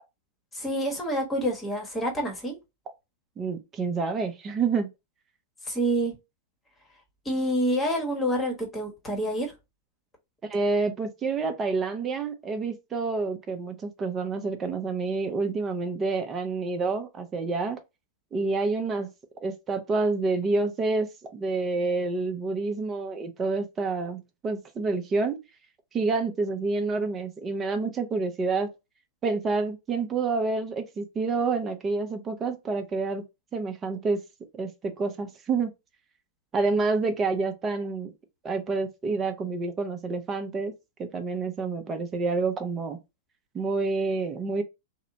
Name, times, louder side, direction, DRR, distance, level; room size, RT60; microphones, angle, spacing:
voice 1, 0.5-2.6 5.7-6.1 7.2-9.5, right 1 dB, 15° left, 1.1 m, -27 dB
voice 2, 3.4-4.9 10.5-17.8 18.3-19.1 19.4-25.4 25.9-28.7 29.2-33.2 33.5-34.2 34.5-35.7 36.5-38.1 38.4-40.7 41.0-43.0 43.5-44.6, right 3 dB, 25° right, 0.6 m, -28 dB
2.7 x 2.1 x 2.6 m
hypercardioid pair, 110°, 0 cm